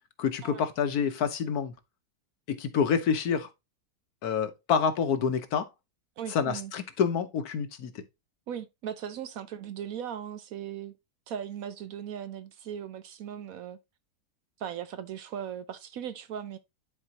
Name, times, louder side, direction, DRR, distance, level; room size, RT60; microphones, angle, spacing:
voice 1, 0.2-1.7 2.5-3.5 4.2-5.7 6.3-8.0, left 6 dB, 70° left, 1.4 m, -27 dB
voice 2, 6.2-6.7 8.5-10.9 11.3-13.8 14.6-16.6, right 9 dB, 65° right, 1.0 m, -38 dB
10.5 x 4.5 x 2.8 m
omnidirectional pair, 1.7 m